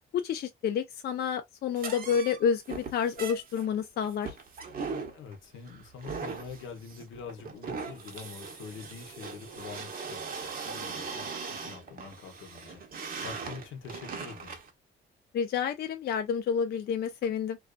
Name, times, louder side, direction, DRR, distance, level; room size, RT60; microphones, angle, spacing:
voice 1, 0.1-4.4 15.3-17.6, left 7 dB, 55° left, 0.4 m, -29 dB
sound 1, 1.8-14.7, right 5 dB, 45° right, 0.8 m, -40 dB
voice 2, 5.1-12.8 13.2-14.6, left 6 dB, 80° left, 0.7 m, -45 dB
2.4 x 2.3 x 2.2 m
cardioid pair, 90°, 20 cm